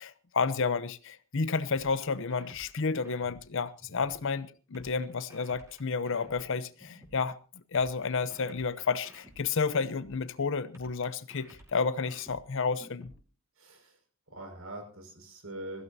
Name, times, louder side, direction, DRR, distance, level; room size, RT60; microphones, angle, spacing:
voice 1, 0.0-7.4 7.7-13.1, left 4 dB, 65° left, 0.7 m, -31 dB
sound 1, 1.7-4.2 4.7-7.2 7.7-10.2 10.7-13.2, equal, 15° right, 5.4 m, -54 dB
voice 2, 13.6-14.0 14.3-15.8, right 1 dB, 80° right, 5.8 m, -43 dB
22.0 x 15.5 x 2.7 m
head